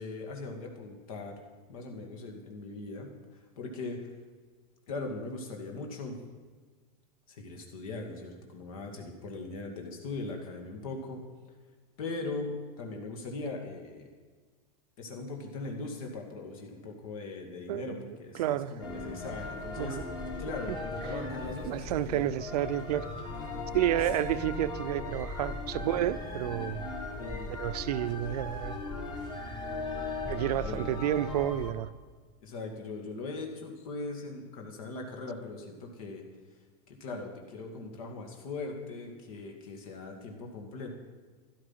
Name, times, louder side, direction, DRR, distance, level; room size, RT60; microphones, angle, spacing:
voice 1, 0.0-1.4 1.7-4.1 4.9-6.2 7.3-11.2 12.0-14.1 15.0-20.0 20.4-22.2 23.3-23.7 24.0-24.1 26.1-26.2 27.2-27.5 30.6-30.8 32.4-36.2 36.9-40.9, left 3 dB, 60° left, 2.2 m, -40 dB
voice 2, 17.7-18.1 18.4-18.8 19.8-20.0 20.7-20.8 21.7-23.1 23.7-26.9 27.6-28.8 30.2-31.9, right 12 dB, 80° right, 0.7 m, -30 dB
sound 1, 18.8-31.7, left 3 dB, 20° left, 1.5 m, -38 dB
13.0 x 12.5 x 5.8 m
supercardioid pair, 180°, 20 cm